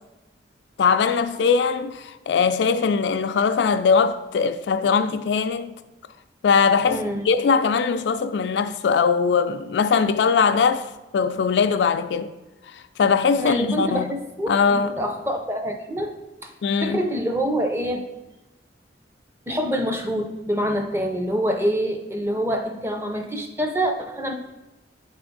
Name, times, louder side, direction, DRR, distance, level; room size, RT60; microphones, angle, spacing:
voice 1, 0.8-5.7 6.4-12.3 12.7-14.1 14.5-15.0 16.6-17.1, left 5 dB, 75° left, 0.3 m, -21 dB
voice 2, 6.9-7.2 13.4-16.1 16.4-16.5 16.8-18.0 19.5-24.3, equal, 15° right, 0.5 m, -26 dB
8.7 x 3.4 x 3.9 m
head